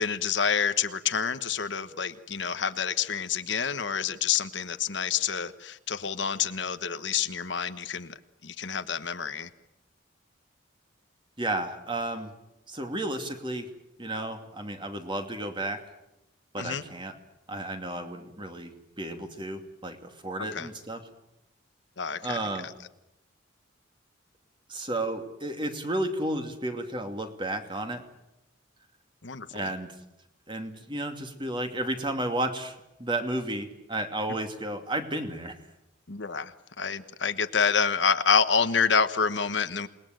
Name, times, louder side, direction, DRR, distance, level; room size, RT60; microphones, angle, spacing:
voice 1, 0.0-9.5 16.6-16.9 20.5-20.7 22.0-22.7 29.2-29.7 36.1-39.9, left 6 dB, 65° left, 10 dB, 1.2 m, -28 dB
voice 2, 11.4-12.3 12.7-13.7 14.0-15.8 16.5-17.1 17.5-21.0 22.2-22.7 24.7-28.0 29.5-29.9 30.5-35.6, right 1 dB, 25° right, 6 dB, 2.5 m, -32 dB
28.0 x 20.0 x 9.2 m, 0.90 s
head